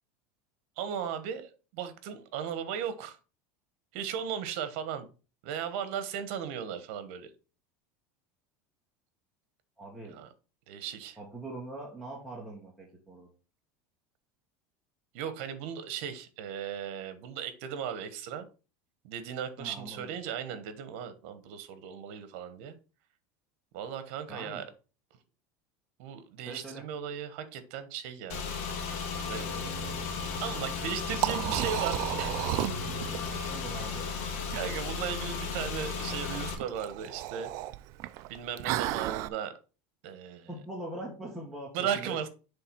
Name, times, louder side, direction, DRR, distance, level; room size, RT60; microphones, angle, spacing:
voice 1, 0.8-3.2 3.9-5.1 5.4-7.3 10.1-10.3 10.7-11.2 15.1-18.5 19.0-22.7 23.7-24.6 26.0-28.4 29.2-29.9 30.4-32.3 33.7-33.9 34.5-37.5 38.3-39.5 40.0-40.5 41.7-42.3, right 8 dB, 65° right, 1.2 m, -36 dB
voice 2, 9.8-10.2 11.2-13.3 19.6-20.1 24.3-24.6 26.4-26.8 33.5-34.1 40.5-42.2, right 2 dB, ahead, 1.3 m, -42 dB
Car / Engine, 28.3-36.5, left 5 dB, 85° left, 1.8 m, -35 dB
Liquid, 30.6-39.3, right 16 dB, 45° right, 0.4 m, -35 dB
7.8 x 3.4 x 4.6 m
cardioid pair, 160°, 7 cm